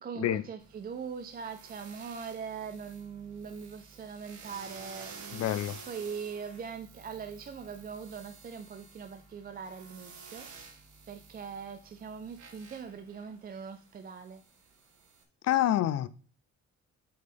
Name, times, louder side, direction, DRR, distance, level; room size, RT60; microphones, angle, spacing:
voice 1, 0.0-10.8 11.1-14.4, right 6 dB, 30° right, 0.4 m, -41 dB
sound 1, 0.6-15.2, right 5 dB, 80° right, 1.6 m, -51 dB
voice 2, 5.3-5.7 15.5-16.1, left 12 dB, 60° left, 0.5 m, -27 dB
7.7 x 5.4 x 3.5 m
cardioid pair, 155°, 29 cm